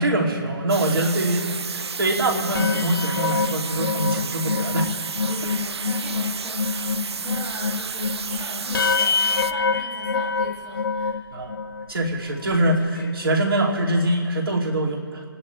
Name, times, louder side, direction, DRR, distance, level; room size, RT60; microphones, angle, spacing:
voice 1, 0.0-4.9 11.3-11.6 11.9-15.2, right 1 dB, 65° right, 1 dB, 3.2 m, -23 dB
sound 1, 0.7-9.5, right 5 dB, 85° right, 0.5 m, -32 dB
sound 2, 2.4-11.9 12.4-12.5 12.8-13.1, left 5 dB, 55° left, 0.9 m, -26 dB
voice 2, 5.3-11.2, right 2 dB, 10° right, -4 dB, 1.5 m, -39 dB
29.0 x 10.5 x 4.7 m, 2.1 s
hypercardioid pair, 170°, 13 cm